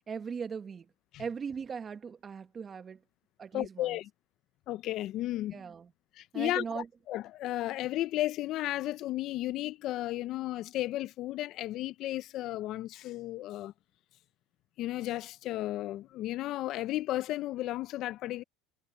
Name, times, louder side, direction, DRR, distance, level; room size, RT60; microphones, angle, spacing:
voice 1, 0.1-0.9 1.2-3.0 3.4-4.0 5.5-5.9 6.3-6.9, right 6 dB, 25° right, 1.4 m, -39 dB
voice 2, 3.5-4.1 4.7-5.6 6.2-13.7 14.8-18.4, left 15 dB, 50° left, 0.6 m, -34 dB
supercardioid pair, 115°, 0 cm